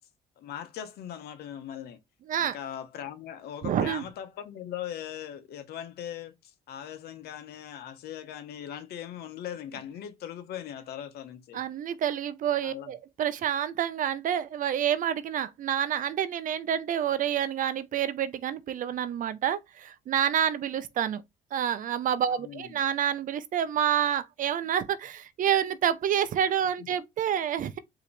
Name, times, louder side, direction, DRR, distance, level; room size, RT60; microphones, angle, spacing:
voice 1, 0.4-2.0 2.4-11.6 12.6-12.9 22.3-22.8 26.8-26.9, left 10 dB, 70° left, 1.0 m, -40 dB
voice 2, 3.6-4.0 11.5-21.2 21.5-27.8, right 9 dB, 50° right, 0.6 m, -28 dB
4.8 x 2.9 x 3.3 m
cardioid pair, 110°, 17 cm